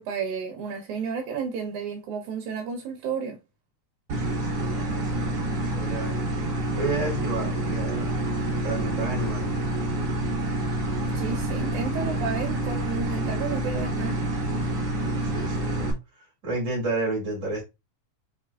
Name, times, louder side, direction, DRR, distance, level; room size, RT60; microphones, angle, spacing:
voice 1, 0.0-3.4 11.0-14.2, right 5 dB, 75° right, 2.2 m, -32 dB
voice 2, 4.1-6.2 6.7-9.5 15.2-17.6, right 2 dB, 25° right, 2.3 m, -32 dB
sound 1, 4.1-15.9, right 1 dB, 55° right, 2.1 m, -28 dB
5.3 x 4.3 x 2.3 m
omnidirectional pair, 3.5 m